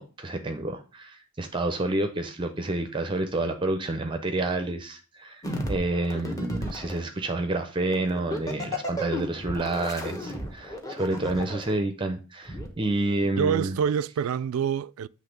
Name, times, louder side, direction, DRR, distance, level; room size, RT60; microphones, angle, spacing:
voice 1, 0.0-5.4 5.7-13.7, right 2 dB, 20° right, 0.5 m, -29 dB
sound 1, 5.4-7.0 7.9-11.7 12.5-12.7, equal, 15° left, 1.0 m, -33 dB
voice 2, 13.2-15.1, right 7 dB, 80° right, 0.3 m, -26 dB
8.0 x 3.2 x 5.1 m
head